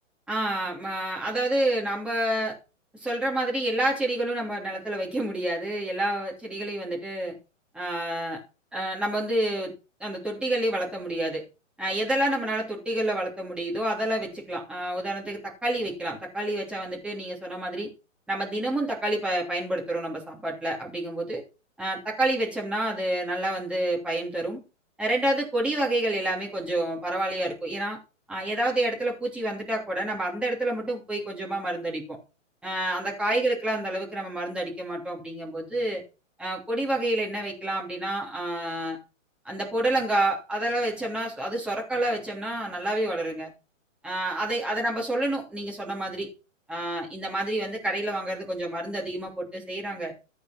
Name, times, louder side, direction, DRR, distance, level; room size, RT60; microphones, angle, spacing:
voice 1, 0.3-2.6 2.9-7.4 7.7-8.4 8.7-9.7 10.0-11.4 11.8-17.9 18.3-21.4 21.8-24.6 25.0-28.0 28.3-32.2 32.6-36.0 36.4-39.0 39.4-43.5 44.0-46.3 46.7-50.1, right 1 dB, 5° right, -3 dB, 3.1 m, -28 dB
14.0 x 5.0 x 5.9 m, 0.31 s
hypercardioid pair, 160°, 39 cm